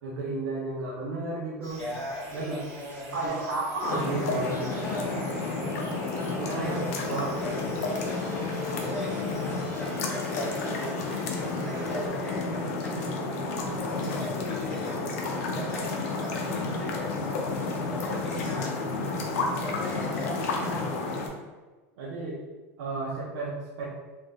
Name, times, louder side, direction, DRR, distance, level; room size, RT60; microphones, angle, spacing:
voice 1, 0.0-1.8 2.3-2.6 3.1-4.7 6.3-6.8 7.1-7.4 22.0-22.4 22.8-23.9, right 2 dB, 80° right, -6 dB, 0.6 m, -32 dB
sound 1, 1.6-12.1, right 2 dB, 35° right, 1.2 m, -47 dB
voice 2, 1.8-3.1 4.7-5.4 6.5-6.9 7.4-7.6 8.0-8.3 8.7-9.4 9.7-10.8 11.7-12.9 13.7-15.1 15.5-17.1 17.4-18.7 19.5-20.3, left 1 dB, 10° left, -10 dB, 1.2 m, -38 dB
Light waves hitting harbour wall at Hamburg Fischmarkt, 3.8-21.3, left 3 dB, 70° left, 0.6 m, -31 dB
3.5 x 2.6 x 2.3 m, 1.3 s
supercardioid pair, 160°, 8 cm